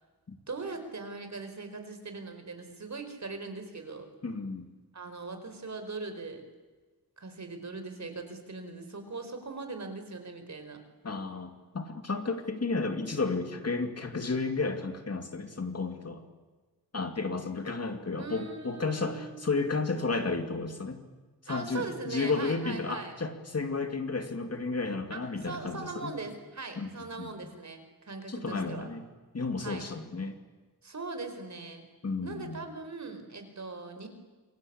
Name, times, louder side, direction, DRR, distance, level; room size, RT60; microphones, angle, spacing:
voice 1, 0.5-4.1 4.9-6.4 7.2-10.8 18.2-19.8 21.5-23.1 25.1-28.9 29.6-29.8 30.8-31.8 32.2-34.1, right 3 dB, 45° right, 7 dB, 4.5 m, -40 dB
voice 2, 4.2-4.7 11.0-16.2 16.9-21.0 21.4-26.1 26.8-26.9 27.2-27.3 28.3-29.1 29.3-30.4 32.0-32.6, left 3 dB, 40° left, 6 dB, 2.4 m, -32 dB
27.5 x 23.5 x 8.7 m, 1.3 s
wide cardioid pair, 160°, 38 cm